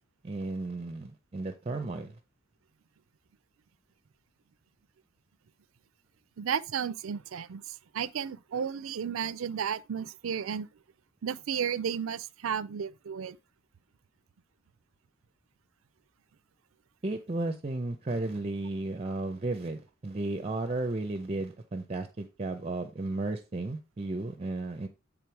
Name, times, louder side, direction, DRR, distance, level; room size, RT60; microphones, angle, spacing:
voice 1, 0.2-2.1 17.0-24.9, right 2 dB, 30° right, 0.6 m, -34 dB
voice 2, 6.4-10.7 11.2-13.4, right 7 dB, 75° right, 0.4 m, -33 dB
8.6 x 3.6 x 4.6 m
head